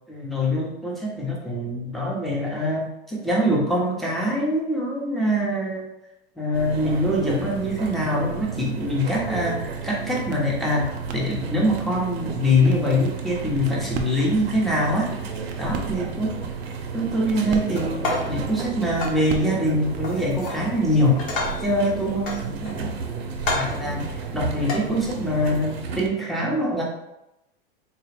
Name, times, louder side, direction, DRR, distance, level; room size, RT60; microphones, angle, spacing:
voice 1, 0.1-5.8 6.4-15.1 15.6-16.3 16.9-21.2 21.6-22.9 23.5-24.0 24.3-26.8, equal, ahead, -4 dB, 0.9 m, -24 dB
sound 1, 6.5-26.1, right 5 dB, 80° right, 0.7 m, -33 dB
sound 2, 9.3-20.2, right 5 dB, 25° right, 0.4 m, -40 dB
sound 3, 17.8-18.4 19.0-19.2 20.0-20.6 21.0-21.7 22.3-22.9 23.4-23.8 24.6-24.8, left 3 dB, 60° left, 1.2 m, -30 dB
3.9 x 2.3 x 3.3 m, 0.88 s
hypercardioid pair, 125°, 31 cm